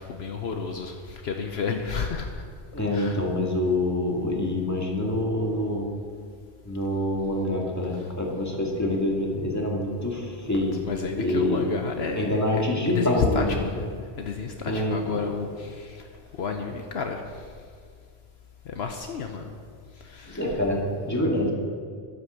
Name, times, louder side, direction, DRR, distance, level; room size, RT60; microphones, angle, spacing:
voice 1, 0.0-2.4 2.9-3.3 7.9-8.1 10.8-13.9 14.2-17.5 18.6-19.5 20.0-20.7, left 5 dB, 70° left, 4 dB, 1.1 m, -31 dB
voice 2, 2.7-5.9 6.6-10.8 11.2-11.7 12.2-13.6 14.7-15.2 20.3-21.5, left 1 dB, 15° left, -2 dB, 2.2 m, -26 dB
11.0 x 9.8 x 6.9 m, 2.1 s
omnidirectional pair, 1.1 m